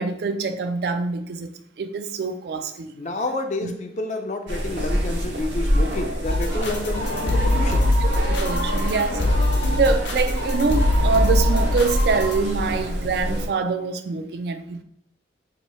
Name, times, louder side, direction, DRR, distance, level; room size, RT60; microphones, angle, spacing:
voice 1, 0.0-1.5 1.8-2.9 3.6-3.7 8.0-9.3 9.7-14.8, right 4 dB, 60° right, 0.3 m, -25 dB
voice 2, 2.9-7.8, left 2 dB, 40° left, 0.4 m, -29 dB
sound 1, 4.5-13.5, equal, 80° right, 0.8 m, -25 dB
sound 2, 6.2-12.4, left 1 dB, 75° left, 0.9 m, -23 dB
2.9 x 2.7 x 4.2 m
head